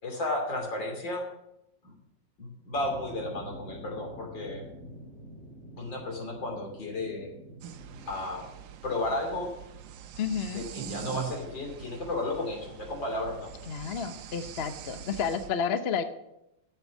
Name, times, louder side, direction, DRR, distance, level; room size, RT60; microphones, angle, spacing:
voice 1, 0.0-1.2 1.8-1.9 2.4-4.7 5.8-7.3 8.1-8.5 8.8-9.5 10.5-13.5, left 2 dB, 80° left, 1 dB, 3.7 m, -33 dB
sound 1, 2.7-8.1, right 1 dB, 25° left, 5.7 m, -46 dB
sound 2, 7.6-15.5, right 9 dB, 80° right, 1.4 m, -43 dB
voice 2, 10.2-10.6 13.7-16.0, left 7 dB, 50° left, 9 dB, 0.7 m, -31 dB
11.5 x 7.2 x 7.2 m, 0.86 s
omnidirectional pair, 2.0 m